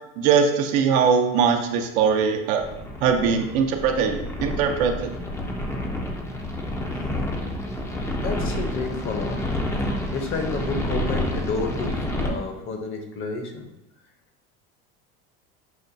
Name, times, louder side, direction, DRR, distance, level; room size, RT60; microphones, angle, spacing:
voice 1, 0.2-2.6 3.0-5.2, right 6 dB, 80° right, 5 dB, 0.6 m, -21 dB
sound 1, 2.6-12.3, left 1 dB, 10° left, 0.4 m, -29 dB
voice 2, 8.2-9.4 10.1-13.7, left 4 dB, 40° left, 4 dB, 0.7 m, -30 dB
5.8 x 2.2 x 2.6 m, 0.92 s
supercardioid pair, 115°, 32 cm